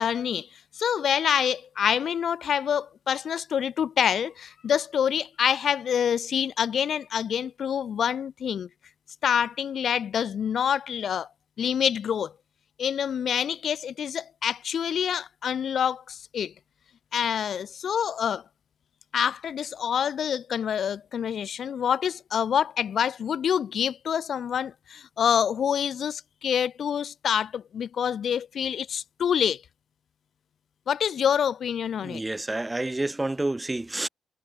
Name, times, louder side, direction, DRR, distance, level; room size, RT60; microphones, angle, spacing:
voice 1, 0.0-8.7 9.2-11.3 11.6-12.3 12.8-16.5 17.1-18.4 19.1-29.6 30.9-32.2, left 8 dB, 60° left, 4.3 m, -26 dB
voice 2, 32.0-34.1, right 2 dB, 15° right, 2.3 m, -29 dB
cardioid pair, 105°, 0 cm